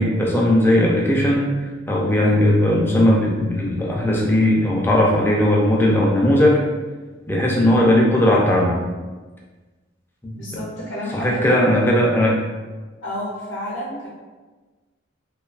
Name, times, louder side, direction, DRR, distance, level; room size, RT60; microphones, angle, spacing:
voice 1, 0.0-6.6 7.3-8.8 10.2-10.3 11.1-12.3, left 1 dB, 10° left, -3 dB, 0.3 m, -18 dB
voice 2, 10.3-12.0 13.0-14.1, equal, 65° left, -7 dB, 0.6 m, -30 dB
2.6 x 2.2 x 2.3 m, 1.3 s
head